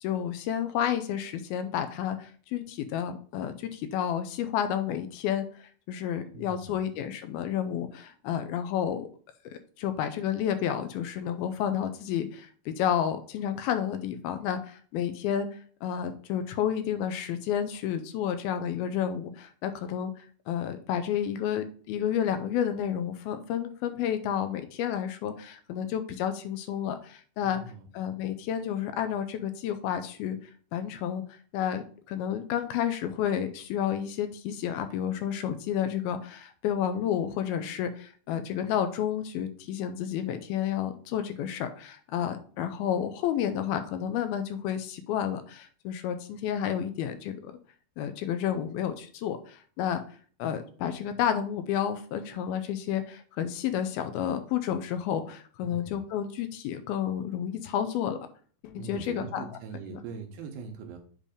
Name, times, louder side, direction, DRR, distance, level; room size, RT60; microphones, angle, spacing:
voice 1, 0.0-9.1 9.5-20.1 20.5-27.6 27.9-31.2 31.5-47.5 48.0-50.0 50.4-58.2 58.6-59.5 59.9-60.0, left 9 dB, 80° left, 9 dB, 2.4 m, -31 dB
voice 2, 6.3-6.9 27.4-27.9 55.6-56.0 58.8-61.0, right 5 dB, 75° right, 4 dB, 2.4 m, -41 dB
7.6 x 3.3 x 5.0 m, 0.44 s
omnidirectional pair, 4.5 m